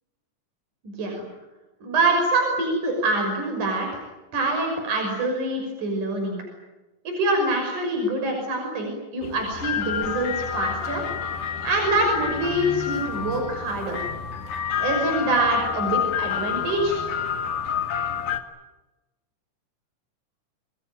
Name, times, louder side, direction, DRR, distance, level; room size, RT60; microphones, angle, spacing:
voice 1, 0.8-1.3 1.8-4.0 4.3-6.4 7.1-11.0 11.6-14.0 14.8-17.0, right 2 dB, 65° right, 2 dB, 7.4 m, -25 dB
sound 1, 9.2-18.4, left 8 dB, 70° left, 3.3 m, -29 dB
28.5 x 22.0 x 9.4 m, 1.1 s
omnidirectional pair, 3.8 m